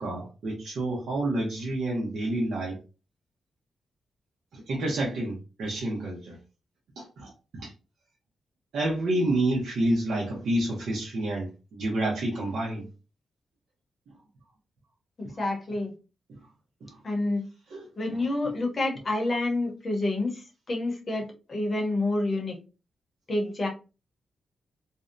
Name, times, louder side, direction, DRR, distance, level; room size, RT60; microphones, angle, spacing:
voice 1, 0.0-2.8 4.5-6.4 7.0-7.3 7.6-7.7 8.7-12.9 15.2-15.3 16.3-16.4 16.8-17.0 17.7-18.2, right 1 dB, 80° right, 0.8 m, -29 dB
voice 2, 15.2-15.9 17.0-17.4 18.0-22.6 23.3-23.7, left 2 dB, 30° left, 0.8 m, -28 dB
2.6 x 2.1 x 2.4 m
wide cardioid pair, 160°, 0 cm